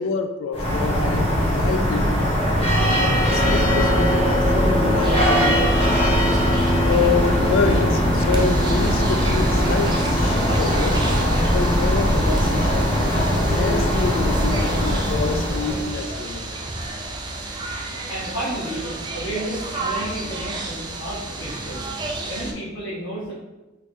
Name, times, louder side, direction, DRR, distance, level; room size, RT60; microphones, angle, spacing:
voice 1, 0.0-2.5 2.9-5.8 6.8-11.0 11.5-16.5, left 4 dB, 70° left, 7 dB, 0.3 m, -27 dB
sound 1, 0.5-16.0, equal, 30° left, 0.8 m, -20 dB
sound 2, 5.0-22.5, right 2 dB, 20° right, 0.3 m, -32 dB
voice 2, 17.9-21.8 22.2-23.3, right 1 dB, 90° left, -10 dB, 1.1 m, -32 dB
3.3 x 3.1 x 2.5 m, 1.1 s
head